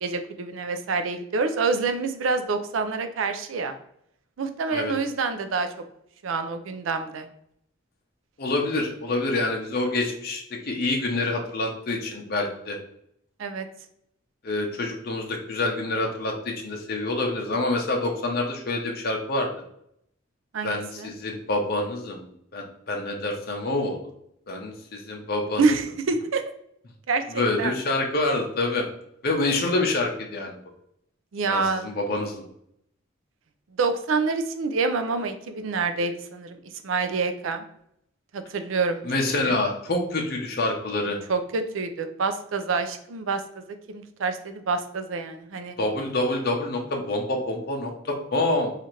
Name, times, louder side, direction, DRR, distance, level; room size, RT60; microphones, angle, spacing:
voice 1, 0.0-3.7 4.4-5.7 6.2-7.3 13.4-13.7 20.5-21.1 25.6-26.4 27.1-27.7 31.3-31.9 33.8-37.6 38.3-39.6 41.3-45.8, right 4 dB, 90° right, 9 dB, 0.4 m, -27 dB
voice 2, 8.4-12.8 14.4-19.5 20.6-24.0 24.5-25.8 27.3-28.9 29.2-30.6 31.5-32.4 39.0-41.2 45.8-48.7, left 2 dB, 50° left, 1 dB, 0.6 m, -27 dB
2.8 x 2.5 x 4.3 m, 0.73 s
head